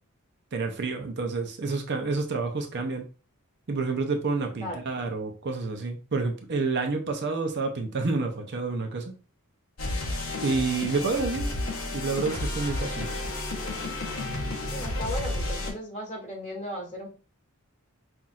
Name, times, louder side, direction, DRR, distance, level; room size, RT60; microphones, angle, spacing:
voice 1, 0.5-3.0 3.7-9.1 10.4-11.5 11.9-13.1, right 3 dB, 50° right, 3 dB, 0.6 m, -29 dB
sound 1, 9.8-15.7, left 2 dB, 65° left, 1.0 m, -31 dB
voice 2, 14.7-17.1, left 1 dB, 30° left, -3 dB, 1.9 m, -36 dB
5.7 x 2.6 x 2.4 m, 0.34 s
head